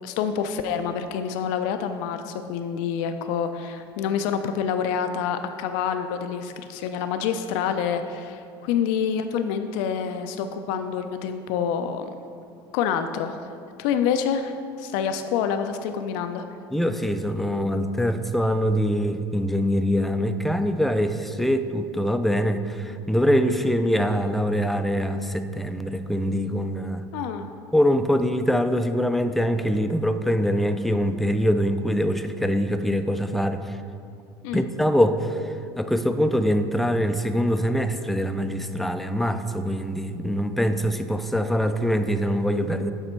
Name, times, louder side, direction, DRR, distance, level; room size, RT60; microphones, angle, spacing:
voice 1, 0.0-12.2 12.7-13.5 13.8-16.4 27.1-27.5 34.4-34.7, left 7 dB, 70° left, 8 dB, 0.4 m, -27 dB
voice 2, 16.7-27.1 27.7-33.8 34.5-42.9, equal, ahead, 8 dB, 0.4 m, -24 dB
6.6 x 4.2 x 4.4 m, 2.4 s
hypercardioid pair, 80°, 12 cm